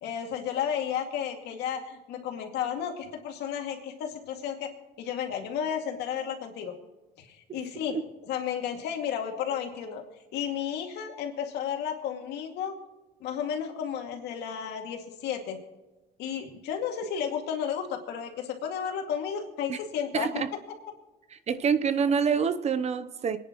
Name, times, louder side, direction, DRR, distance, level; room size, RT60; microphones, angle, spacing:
voice 1, 0.0-4.7 5.0-6.7 7.2-8.0 8.3-10.0 10.3-12.7 13.2-15.6 16.2-20.4, left 8 dB, 80° left, 3 dB, 2.3 m, -33 dB
voice 2, 20.1-20.5 21.5-23.4, right 6 dB, 40° right, 12 dB, 0.8 m, -26 dB
27.0 x 10.0 x 3.1 m, 1.1 s
cardioid pair, 110°, 17 cm